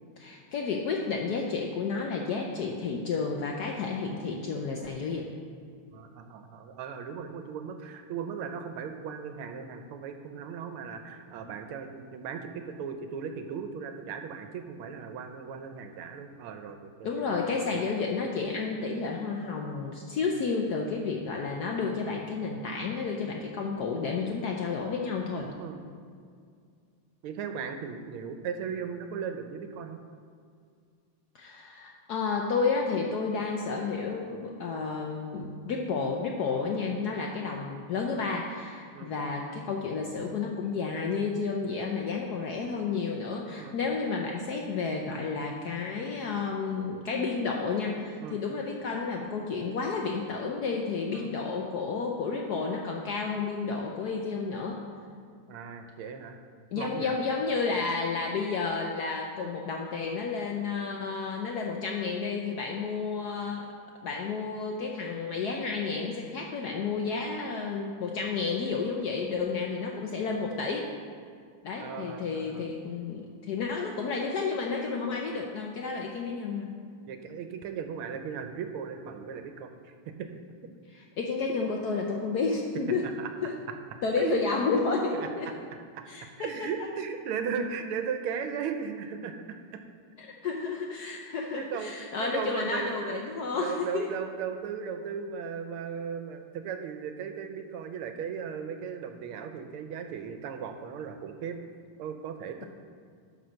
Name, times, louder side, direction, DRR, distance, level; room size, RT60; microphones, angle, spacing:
voice 1, 0.2-5.3 17.0-25.5 31.3-54.8 56.7-63.7 64.0-70.9 71.6-76.7 80.9-83.0 83.4-83.6 84.0-85.5 86.1-86.5 90.2-94.1, left 4 dB, 70° left, 0 dB, 0.9 m, -31 dB
voice 2, 5.9-17.9 25.6-25.8 27.2-30.0 38.9-39.1 43.6-43.7 48.2-48.4 51.1-51.3 55.5-56.4 56.7-57.2 71.8-72.7 77.1-79.9 80.2-80.3 83.0-83.3 83.7-84.4 85.1-86.0 86.4-89.8 91.6-91.9 92.2-93.2 93.6-101.6 102.0-102.7, right 7 dB, 90° right, 7 dB, 1.6 m, -37 dB
10.0 x 4.1 x 6.3 m, 2.2 s
omnidirectional pair, 2.3 m